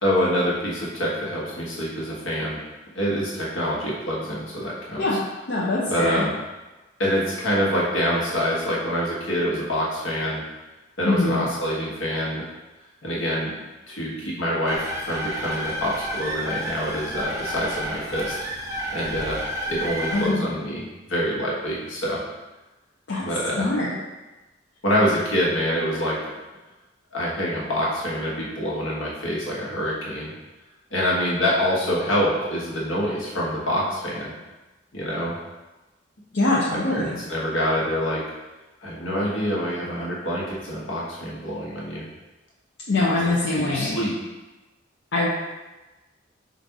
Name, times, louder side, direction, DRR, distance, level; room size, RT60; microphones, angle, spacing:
voice 1, 0.0-2.6 2.9-5.1 5.9-6.3 7.0-10.4 11.0-12.4 13.0-13.5 13.9-18.4 18.9-19.4 19.7-20.8 21.1-22.2 23.2-23.7 24.8-26.2 27.1-30.3 30.9-34.3 34.9-35.3 36.9-38.2 38.8-42.0 43.1-44.1, equal, 80° left, -5 dB, 1.2 m, -26 dB
voice 2, 5.0-6.3 11.0-11.5 20.1-20.5 23.1-23.2 23.6-24.0 36.3-37.2 42.9-44.0 45.1-45.3, left 2 dB, 60° left, -5 dB, 0.6 m, -23 dB
sound 1, 14.7-20.3, equal, 15° right, 0.5 m, -31 dB
4.0 x 2.5 x 4.6 m, 1.1 s
head